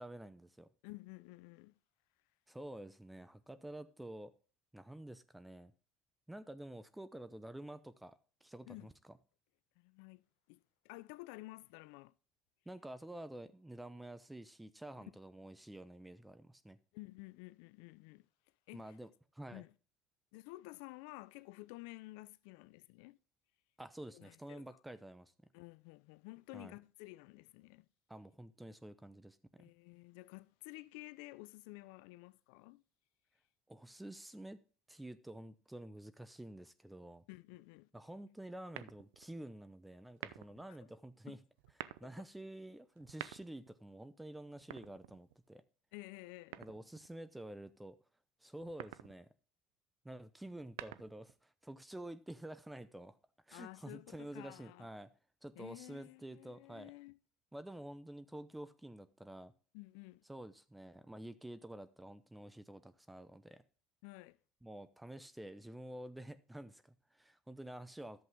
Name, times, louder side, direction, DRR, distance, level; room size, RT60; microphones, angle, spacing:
voice 1, 0.0-0.7 2.5-4.3 4.7-5.7 6.3-9.2 12.7-16.8 18.7-19.6 23.8-25.3 26.5-26.8 28.1-29.7 33.7-34.6 34.9-37.2 37.9-41.4 42.0-45.6 46.6-48.0 48.4-49.3 50.0-53.2 53.5-55.1 55.4-56.9 57.5-59.5 60.3-63.6 64.6-68.2, right 1 dB, 10° right, 0.7 m, -49 dB
voice 2, 0.8-1.7 8.7-8.9 9.8-10.2 10.5-12.1 16.9-18.2 18.7-18.9 19.5-19.7 20.3-23.2 24.1-24.6 25.5-27.9 29.6-32.8 37.3-37.9 41.3-41.4 45.9-46.6 53.5-54.9 55.6-57.2 59.7-60.2 64.0-64.4, left 21 dB, 80° left, 0.5 m, -52 dB
sound 1, 38.7-39.3 40.1-40.7 41.6-42.1 43.0-43.7 44.6-45.5 46.5-47.1 48.6-49.2 50.5-51.3, right 15 dB, 85° right, 0.5 m, -49 dB
11.0 x 7.8 x 3.7 m
hypercardioid pair, 75°, 0 cm